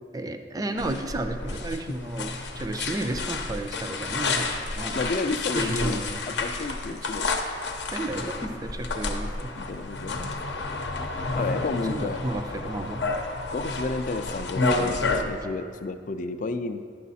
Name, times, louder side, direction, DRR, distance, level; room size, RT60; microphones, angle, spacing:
voice 1, 0.1-5.0 5.5-6.2 7.9-9.5 11.4-13.0, right 2 dB, 20° right, 7 dB, 0.4 m, -32 dB
sound 1, 0.8-15.2, left 3 dB, 75° left, 0.7 m, -30 dB
voice 2, 4.9-6.0 6.3-7.3 9.6-10.3 11.4-12.2 13.5-16.8, left 3 dB, 45° left, 9 dB, 0.4 m, -31 dB
9.3 x 6.3 x 4.1 m, 2.1 s
head